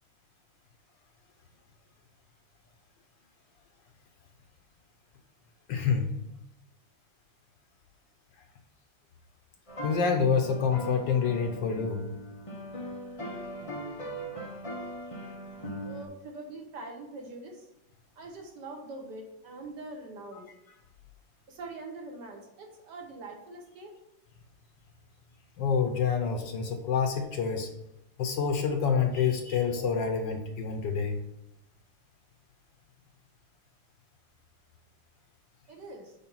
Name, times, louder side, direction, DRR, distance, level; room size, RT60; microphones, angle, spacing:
voice 1, 5.7-6.1 9.8-12.1 25.6-27.7 28.2-31.2, left 6 dB, 70° left, 5 dB, 1.2 m, -27 dB
sound 1, 9.7-16.0, right 1 dB, 50° left, 0.4 m, -39 dB
voice 2, 15.8-17.7 18.1-20.5 21.5-23.9 35.7-36.1, right 2 dB, 60° right, 3 dB, 1.4 m, -43 dB
5.8 x 4.7 x 5.4 m, 0.86 s
omnidirectional pair, 2.3 m